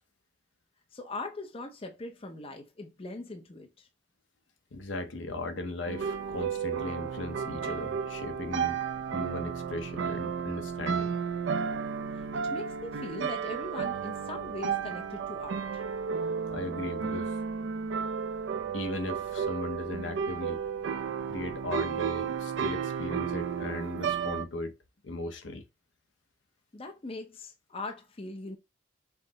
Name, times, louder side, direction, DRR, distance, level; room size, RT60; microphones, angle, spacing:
voice 1, 0.9-3.9 12.1-15.8 26.7-28.6, left 2 dB, 30° left, 0.6 m, -41 dB
voice 2, 4.7-8.8 9.1-11.1 16.5-17.3 18.7-20.6 21.3-24.7 25.0-25.6, left 2 dB, 65° left, 0.7 m, -37 dB
sound 1, 5.9-24.4, right 6 dB, 65° right, 0.4 m, -33 dB
5.6 x 2.1 x 3.9 m
head